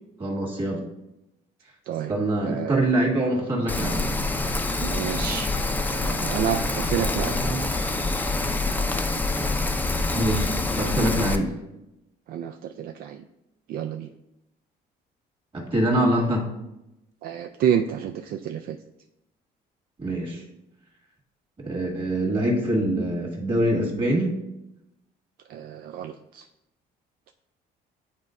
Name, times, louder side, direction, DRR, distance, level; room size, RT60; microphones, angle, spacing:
voice 1, 0.2-0.8 2.1-4.1 6.5-7.7 10.1-11.5 15.5-16.5 20.0-20.4 21.6-24.4, right 1 dB, 30° right, -2 dB, 1.8 m, -25 dB
voice 2, 1.9-2.2 2.5-2.9 4.8-5.5 5.9-7.4 12.3-13.2 13.7-14.1 17.2-18.8 25.5-26.4, right 9 dB, 65° right, 6 dB, 0.4 m, -29 dB
Rain, 3.7-11.4, left 2 dB, 10° left, 0.5 m, -26 dB
9.4 x 4.1 x 2.5 m, 0.89 s
cardioid pair, 110°, 17 cm